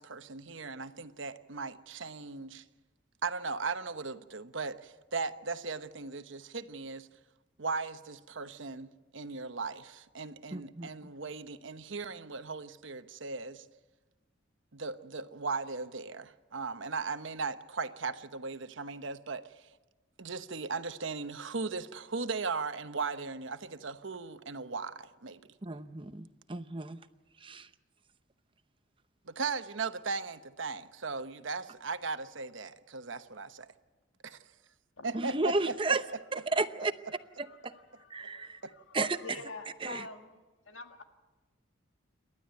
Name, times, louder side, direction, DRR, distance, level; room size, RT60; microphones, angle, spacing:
voice 1, 0.0-2.6 3.2-7.1 7.6-8.9 9.1-13.6 14.7-19.7 20.2-25.4 29.2-33.7 34.2-34.4 35.0-35.5 35.9-36.0 38.6-38.7, right 4 dB, 75° right, 10 dB, 1.0 m, -37 dB
voice 2, 10.5-10.9 25.6-27.0 27.4-27.7 35.1-36.0 36.3-36.9 37.4-37.7 38.1-38.6 38.9-39.4 39.8-40.1, right 3 dB, 25° right, 11 dB, 0.7 m, -33 dB
voice 3, 38.2-38.5 39.2-40.3 40.7-41.0, left 3 dB, 80° left, 6 dB, 2.0 m, -45 dB
28.5 x 12.0 x 9.3 m, 1.2 s
head